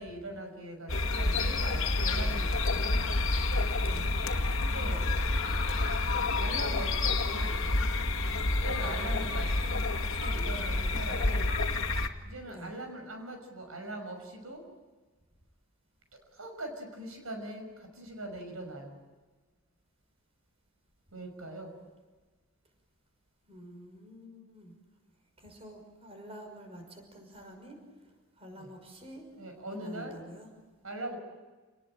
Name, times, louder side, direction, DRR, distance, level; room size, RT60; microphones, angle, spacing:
voice 1, 0.0-3.1 4.6-5.1 6.3-7.7 8.6-11.5 12.2-14.6 16.3-19.0 21.1-21.8 28.6-28.7 29.4-30.2 30.8-31.2, right 1 dB, 80° right, 5 dB, 5.9 m, -41 dB
sound 1, 0.9-12.1, left 2 dB, 65° left, 2.0 m, -29 dB
voice 2, 3.8-4.1 12.4-12.7 23.5-24.7 25.4-27.8 28.4-29.3 29.8-30.5, right 1 dB, 30° right, 4 dB, 5.8 m, -48 dB
29.5 x 20.0 x 9.0 m, 1.3 s
head